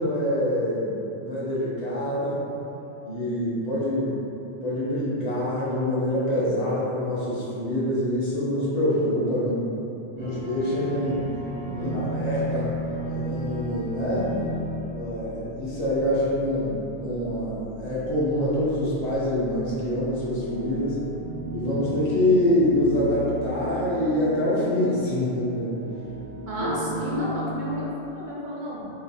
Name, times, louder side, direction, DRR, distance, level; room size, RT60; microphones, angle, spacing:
voice 1, 0.0-2.4 3.1-4.1 4.6-9.7 10.1-11.2 11.7-12.7 13.1-14.3 14.8-21.0 21.5-25.7 26.6-26.7, left 1 dB, 40° left, -8 dB, 0.8 m, -25 dB
sound 1, 10.2-27.8, equal, 85° right, 1.4 m, -35 dB
voice 2, 11.7-12.1 26.5-28.8, equal, 55° right, -6 dB, 0.7 m, -31 dB
3.2 x 2.4 x 2.6 m, 2.9 s
omnidirectional pair, 1.1 m